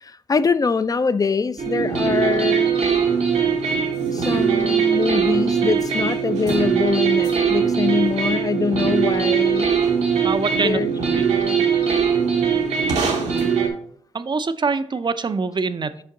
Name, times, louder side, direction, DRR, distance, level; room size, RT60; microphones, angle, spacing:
voice 1, 0.0-2.8 4.1-9.7 10.5-10.9, left 5 dB, 35° left, 0.4 m, -23 dB
sound 1, 1.6-13.7, right 6 dB, 80° right, 1.1 m, -21 dB
voice 2, 10.2-10.8 11.2-11.3 14.1-16.0, right 4 dB, 45° right, 0.5 m, -24 dB
5.5 x 5.1 x 3.8 m
supercardioid pair, 40°, 11 cm